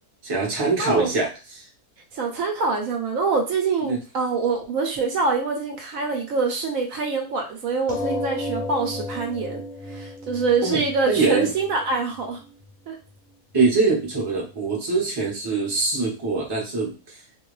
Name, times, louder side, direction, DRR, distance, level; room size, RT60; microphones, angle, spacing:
voice 1, 0.2-1.6 3.9-4.0 10.6-11.5 13.5-16.9, right 4 dB, 25° right, -2 dB, 0.6 m, -23 dB
voice 2, 0.8-1.1 2.1-9.6 9.9-12.4 12.9-13.0, right 4 dB, 70° right, 2 dB, 0.9 m, -25 dB
sound 1, 7.9-12.9 13.6-13.7 14.0-14.1, left 1 dB, 65° left, 0.7 m, -33 dB
2.5 x 2.2 x 3.1 m, 0.32 s
omnidirectional pair, 1.6 m